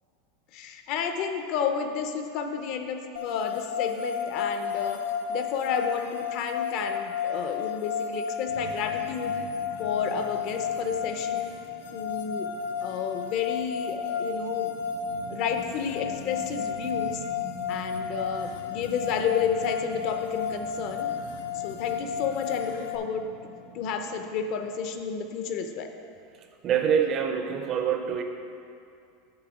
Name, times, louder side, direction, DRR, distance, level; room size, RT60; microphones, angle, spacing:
voice 1, 0.5-5.0 5.3-9.3 9.8-11.5 11.9-12.5 12.8-14.7 15.3-17.2 17.7-21.1 21.6-23.2 23.7-25.9, left 6 dB, 40° left, 6 dB, 0.5 m, -31 dB
sound 1, 3.2-23.0, left 7 dB, 90° left, 0.6 m, -32 dB
sound 2, 8.5-25.7, right 2 dB, 85° right, 1.6 m, -46 dB
voice 2, 26.6-28.2, right 8 dB, 25° right, 6 dB, 0.5 m, -25 dB
8.7 x 5.6 x 4.8 m, 2.5 s
supercardioid pair, 175°, 0 cm